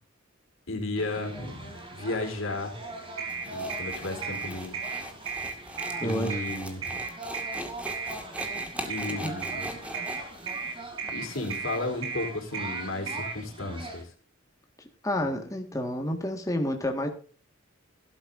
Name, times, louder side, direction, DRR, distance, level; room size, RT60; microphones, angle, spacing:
voice 1, 0.7-2.8 3.5-4.8 6.0-7.0 8.9-9.7 11.1-14.1, left 2 dB, 85° left, 3.8 m, -34 dB
sound 1, 0.9-14.0, right 1 dB, 25° right, 3.7 m, -42 dB
sound 2, 3.2-13.4, right 5 dB, 85° right, 4.3 m, -34 dB
sound 3, 3.3-11.9, right 1 dB, 5° right, 1.9 m, -41 dB
voice 2, 6.0-6.4 9.1-9.3 15.0-17.1, left 1 dB, 15° left, 1.7 m, -29 dB
18.0 x 12.0 x 2.6 m
head